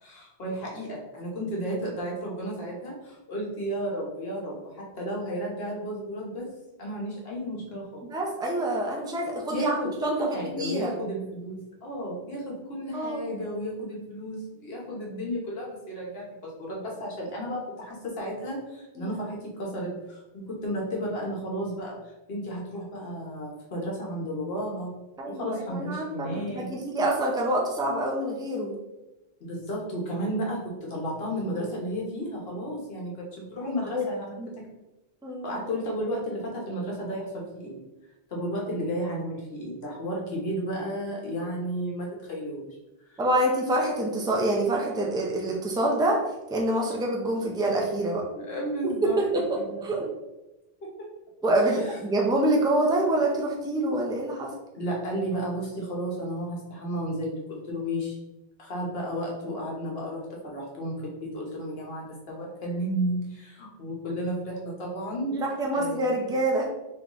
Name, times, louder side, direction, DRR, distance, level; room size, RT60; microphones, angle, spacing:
voice 1, 0.0-6.5 6.8-8.1 9.5-24.9 25.3-26.7 29.4-34.6 35.4-37.8 38.3-42.8 43.0-43.2 48.3-49.9 50.8-51.1 51.6-52.0 54.7-58.2 58.6-65.4 65.7-66.2, equal, 75° left, -2 dB, 1.3 m, -33 dB
voice 2, 8.0-9.7 10.0-10.9 12.9-13.3 19.0-19.1 25.2-28.7 33.6-34.1 34.4-34.5 35.2-35.6 43.2-46.2 46.5-48.2 48.8-50.1 51.4-54.5 65.6-66.7, right 1 dB, 5° right, -1 dB, 0.4 m, -26 dB
3.8 x 3.1 x 3.0 m, 1.0 s
omnidirectional pair, 1.0 m